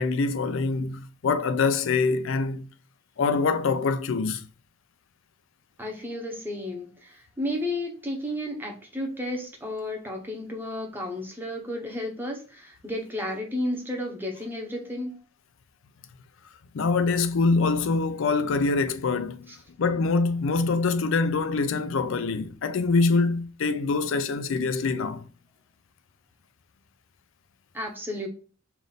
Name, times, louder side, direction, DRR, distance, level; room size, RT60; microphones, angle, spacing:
voice 1, 0.0-2.7 3.2-4.5 16.7-19.5 19.8-25.2, left 4 dB, 65° left, 0.4 m, -24 dB
voice 2, 5.8-15.1 27.7-28.3, left 1 dB, 10° right, 0.9 m, -32 dB
3.4 x 2.5 x 3.8 m
head